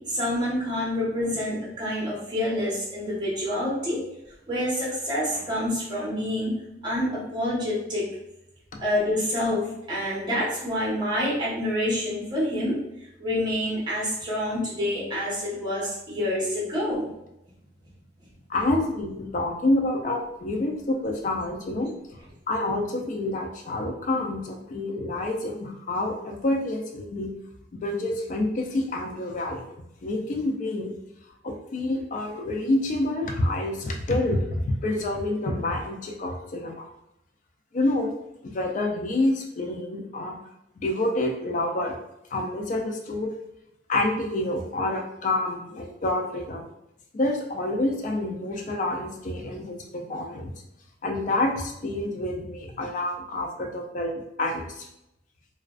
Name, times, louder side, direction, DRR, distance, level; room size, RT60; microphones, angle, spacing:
voice 1, 0.1-4.0 4.5-8.1 8.8-12.8 13.2-17.1, left 1 dB, 25° right, -7 dB, 1.0 m, -27 dB
voice 2, 18.5-21.9 22.5-27.3 27.7-29.6 30.0-30.9 31.4-36.9 37.7-38.1 38.4-40.4 40.7-42.0 42.3-43.3 43.9-46.6 47.1-50.5 51.0-54.9, left 2 dB, 45° left, 2 dB, 0.4 m, -28 dB
2.4 x 2.2 x 2.3 m, 0.86 s
head